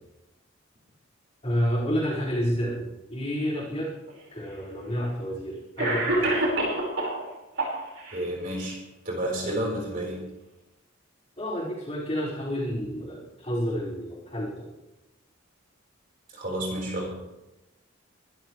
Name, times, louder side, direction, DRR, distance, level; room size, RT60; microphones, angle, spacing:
voice 1, 1.4-3.9 4.3-6.4 11.4-14.6, equal, 30° left, -7 dB, 5.5 m, -29 dB
Cough, 4.1-4.2 5.2-5.3 5.8-7.2 7.6-8.2, right 2 dB, 75° right, 5.3 m, -26 dB
voice 2, 8.1-8.8 9.0-10.2 16.3-17.1, right 1 dB, 45° right, -2 dB, 4.6 m, -30 dB
23.0 x 13.5 x 3.3 m, 0.98 s
head